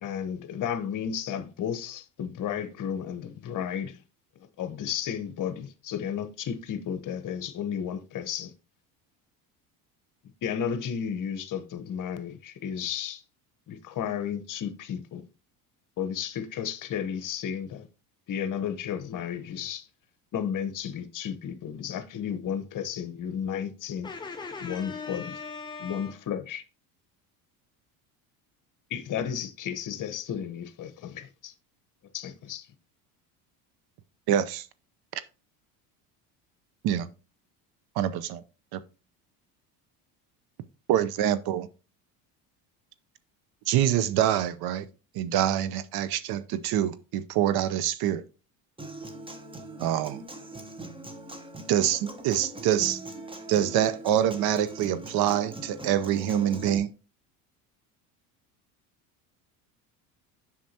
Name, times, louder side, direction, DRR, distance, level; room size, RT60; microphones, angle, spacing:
voice 1, 0.0-4.0 4.6-8.5 10.4-13.2 13.7-15.2 16.0-17.9 18.3-19.9 20.3-24.1 24.6-25.4 25.8-26.6 28.9-31.5 32.1-32.7, left 8 dB, 45° left, 1.0 m, -33 dB
voice 2, 24.0-26.1, left 4 dB, 10° left, 0.4 m, -39 dB
voice 3, 34.3-34.7 36.8-37.1 38.0-38.4 38.7-38.8 40.9-41.7 43.7-44.9 45.1-48.2 49.8-50.2 51.7-53.0 53.5-56.9, right 11 dB, 55° right, 0.7 m, -25 dB
Human voice / Acoustic guitar, 48.8-56.8, right 1 dB, 10° right, 1.0 m, -41 dB
7.4 x 6.0 x 2.8 m
supercardioid pair, 90°, 44 cm